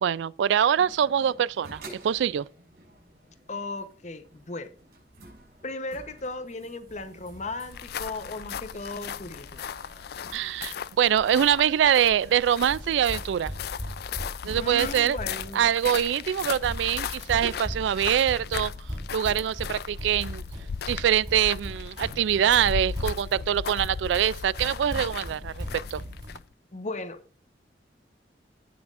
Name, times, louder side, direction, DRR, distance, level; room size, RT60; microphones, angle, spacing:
voice 1, 0.0-2.5 10.3-13.5 14.4-15.2 15.5-18.7 19.1-20.4 20.9-25.6 25.9-26.0, right 9 dB, 80° right, 0.3 m, -24 dB
sound 1, 0.7-19.6, right 1 dB, 60° right, 5.2 m, -52 dB
voice 2, 3.5-4.7 5.6-9.6 14.5-15.7 26.7-27.4, left 2 dB, 40° left, 0.9 m, -36 dB
sound 2, 6.9-26.4, equal, 25° right, 3.8 m, -40 dB
sound 3, 7.6-26.5, left 7 dB, 60° left, 0.4 m, -37 dB
17.0 x 6.0 x 2.5 m
head